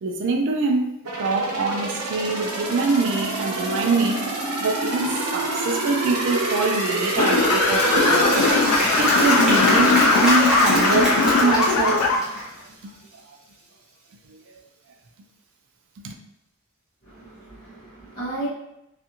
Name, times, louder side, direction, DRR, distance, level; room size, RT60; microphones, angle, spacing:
voice 1, 0.0-4.3 4.6-8.3 9.0-12.2 14.3-14.4 16.0-16.1, right 3 dB, 55° right, 0.3 m, -24 dB
sound 1, 1.0-11.8 12.2-12.3, right 2 dB, 90° right, 0.8 m, -28 dB
sound 2, 7.2-12.2, left 3 dB, 85° left, 0.4 m, -19 dB
Applause / Crowd, 7.2-12.6, equal, 5° right, 0.7 m, -25 dB
voice 2, 17.0-18.5, right 2 dB, 35° left, 0.8 m, -34 dB
2.5 x 2.4 x 2.8 m
head